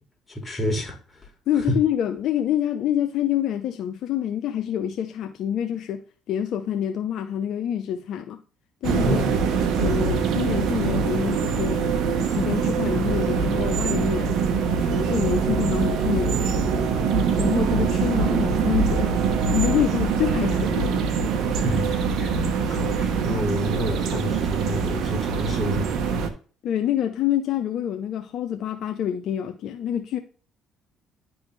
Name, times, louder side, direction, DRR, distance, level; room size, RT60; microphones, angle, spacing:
voice 1, 0.3-1.0 1.6-1.8 9.0-9.4 21.5-25.9, equal, 25° left, 2.2 m, -29 dB
voice 2, 1.5-6.0 6.3-8.4 8.8-9.2 9.8-14.3 14.7-16.7 17.4-19.2 19.5-21.0 26.6-30.2, left 10 dB, 65° left, 0.6 m, -27 dB
sound 1, 8.8-26.3, right 5 dB, 70° right, 1.0 m, -23 dB
10.5 x 3.6 x 3.1 m
supercardioid pair, 80°, 0 cm